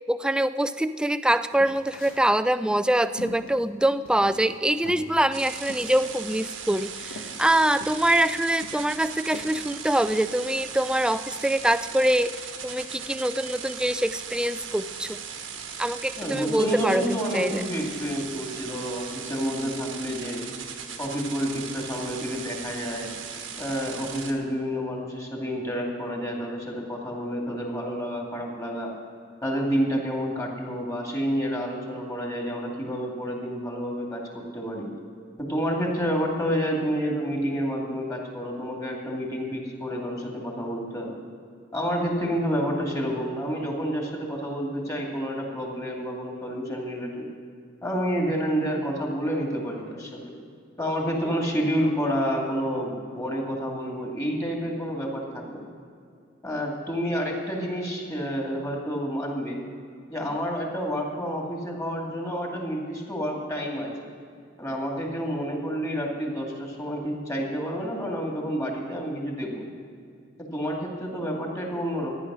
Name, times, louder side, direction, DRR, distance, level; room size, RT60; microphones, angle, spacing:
voice 1, 0.1-15.2 15.8-17.6, right 1 dB, 5° right, 13 dB, 0.3 m, -24 dB
sound 1, 1.5-2.2 2.7-4.6 4.8-5.1 5.7-6.3 6.6-6.7 7.0-8.0 8.6-9.5, left 1 dB, 80° left, 1.3 m, -42 dB
sound 2, 5.3-24.3, right 6 dB, 75° right, 1.4 m, -38 dB
voice 2, 16.2-20.4 21.0-23.1 23.6-28.9 29.4-34.9 35.4-41.1 41.7-47.3 47.8-50.3 50.8-55.6 56.4-59.6 60.1-63.9 64.6-69.7 70.4-72.1, equal, 15° left, -1 dB, 2.3 m, -29 dB
14.0 x 10.5 x 6.2 m, 2.3 s
head